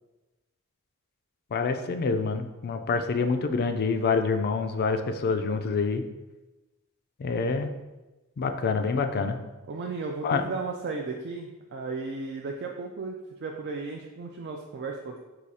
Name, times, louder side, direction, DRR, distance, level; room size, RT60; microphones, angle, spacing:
voice 1, 1.5-6.0 7.2-7.7 8.4-9.4 10.2-10.4, left 4 dB, 45° left, 7 dB, 0.4 m, -26 dB
voice 2, 9.7-15.2, right 4 dB, 50° right, 1 dB, 0.4 m, -35 dB
4.8 x 2.3 x 4.1 m, 1.1 s
head